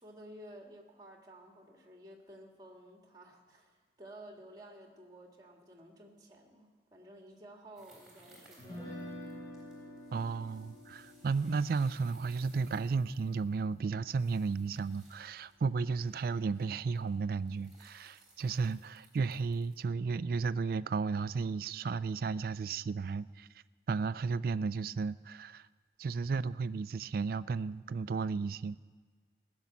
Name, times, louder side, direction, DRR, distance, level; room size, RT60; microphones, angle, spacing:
voice 1, 0.0-9.2, right 1 dB, 20° right, 1 dB, 1.8 m, -53 dB
sound 1, 7.8-19.8, right 2 dB, ahead, 3.6 m, -63 dB
Guitar, 8.6-14.7, equal, 20° left, 5.2 m, -49 dB
voice 2, 10.1-23.5 23.9-25.7 26.0-28.8, right 4 dB, 50° right, 17 dB, 0.3 m, -33 dB
16.5 x 7.1 x 9.3 m, 1.4 s
head